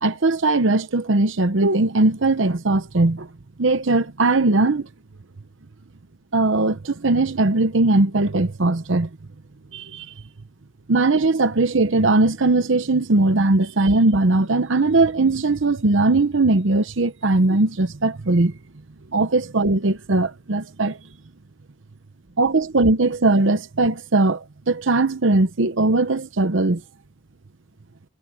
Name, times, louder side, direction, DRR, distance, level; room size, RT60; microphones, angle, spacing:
voice 1, 0.0-3.3 3.6-4.9 6.3-9.1 9.7-10.1 10.9-18.5 19.1-21.0 22.4-26.8, right 2 dB, 65° right, 0.9 m, -19 dB
head